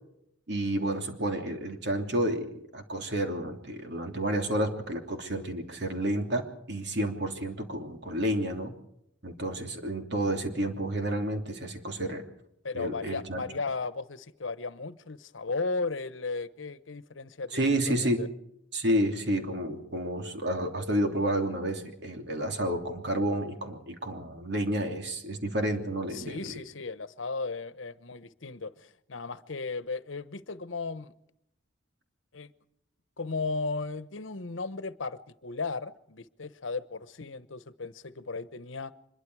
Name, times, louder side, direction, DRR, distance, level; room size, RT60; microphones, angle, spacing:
voice 1, 0.5-8.7 9.2-12.2 12.7-13.4 17.5-18.3 18.7-26.6, right 1 dB, 60° right, 3.1 m, -30 dB
voice 2, 12.6-18.3 26.1-31.1 32.3-32.5 33.2-38.9, left 3 dB, 80° left, 1.1 m, -35 dB
25.0 x 22.5 x 4.8 m
head